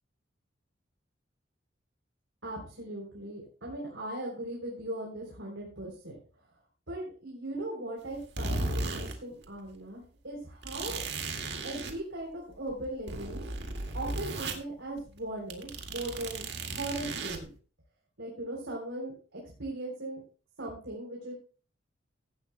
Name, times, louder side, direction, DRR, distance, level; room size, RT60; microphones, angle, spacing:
voice 1, 2.4-6.2 6.9-11.0 11.6-13.4 13.9-17.5 18.2-20.2 20.6-21.3, right 1 dB, 75° right, -2 dB, 3.4 m, -39 dB
sound 1, 8.1-9.2 9.4-9.5 10.6-11.9 12.5-14.6 15.0-15.2 15.5-17.4, right 2 dB, 55° right, 2.0 m, -35 dB
16.0 x 11.5 x 2.2 m, 0.40 s
head